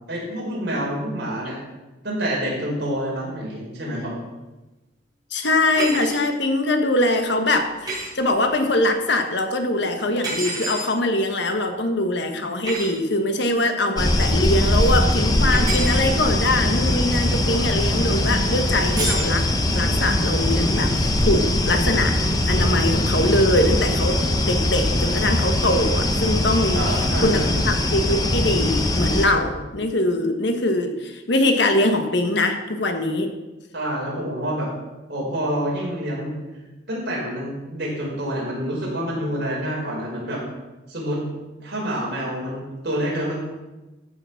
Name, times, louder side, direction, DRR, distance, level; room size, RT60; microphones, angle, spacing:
voice 1, 0.1-1.6 2.0-4.2 26.7-27.7 33.7-34.7 35.1-36.3 36.9-40.4 40.9-41.2 41.6-43.4, equal, 55° right, -3 dB, 4.9 m, -27 dB
voice 2, 5.3-19.5 19.7-22.2 22.5-33.3, left 1 dB, 60° left, 6 dB, 1.4 m, -22 dB
sound 1, 5.7-6.2 7.9-8.1 10.2-10.9 12.7-12.9 15.5-16.0 19.0-19.3, right 2 dB, 20° right, 5.1 m, -28 dB
sound 2, 14.0-29.3, left 1 dB, 20° left, 1.0 m, -21 dB
14.5 x 7.1 x 5.8 m, 1.1 s
head